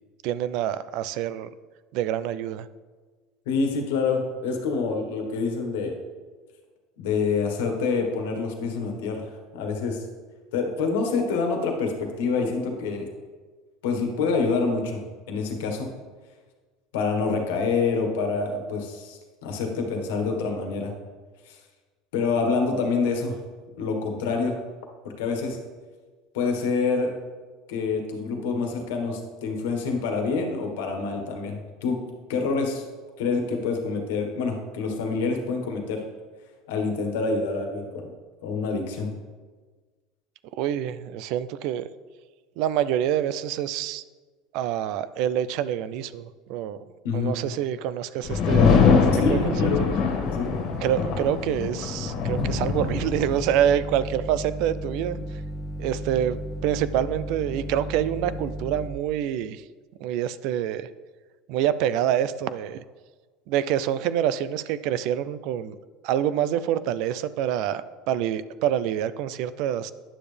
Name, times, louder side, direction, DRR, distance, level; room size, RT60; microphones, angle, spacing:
voice 1, 0.2-1.5 1.9-2.7 40.5-41.9 42.6-44.0 44.5-46.8 47.1-48.7 49.1-49.5 50.8-55.2 55.8-59.6 60.0-60.9 61.5-62.8 63.5-65.8 66.0-69.9, right 10 dB, 65° right, 15 dB, 0.4 m, -26 dB
voice 2, 3.5-5.9 7.0-10.0 10.5-13.1 13.8-15.0 15.3-15.9 16.9-20.9 21.5-21.6 22.1-23.4 23.8-24.5 25.2-25.6 26.3-27.1 27.7-32.0 32.3-32.8 33.2-36.0 36.7-38.1 38.4-39.1 47.0-47.3 49.2-49.8 50.3-50.6, left 4 dB, 80° left, 3 dB, 1.4 m, -26 dB
sound 1, 48.3-53.7, left 5 dB, 60° left, 1.7 m, -23 dB
sound 2, 52.2-58.9, right 1 dB, 30° left, 1.2 m, -34 dB
9.8 x 6.9 x 3.4 m, 1.4 s
supercardioid pair, 100°, 0 cm